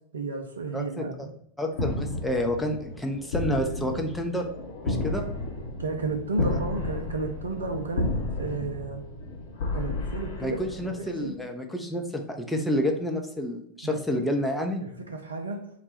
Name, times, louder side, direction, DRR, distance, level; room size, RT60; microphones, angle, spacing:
voice 1, 0.1-1.3 5.8-8.1 8.4-9.0 9.7-11.4 13.8-14.0 14.8-15.7, right 3 dB, 70° right, 5 dB, 0.5 m, -33 dB
voice 2, 0.7-1.3 1.6-4.5 4.8-5.2 6.4-6.6 10.4-14.8, equal, 5° left, 2 dB, 0.6 m, -29 dB
sound 1, 1.7-11.2, left 2 dB, 60° left, 0.9 m, -32 dB
3.9 x 2.2 x 4.2 m, 0.72 s
figure-of-eight pair, 90°, 0 cm